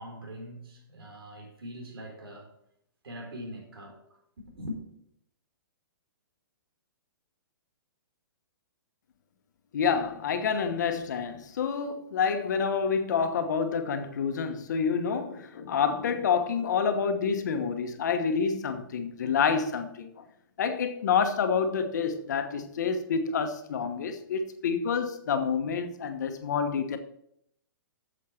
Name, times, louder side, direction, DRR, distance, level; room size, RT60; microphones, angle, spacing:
voice 1, 0.0-2.5 3.0-4.2 4.5-4.8, equal, 90° right, 4.0 m, -42 dB
voice 2, 9.7-20.2 20.6-27.0, left 6 dB, 50° left, 1.2 m, -28 dB
8.7 x 7.3 x 5.8 m
hypercardioid pair, 175°, 12 cm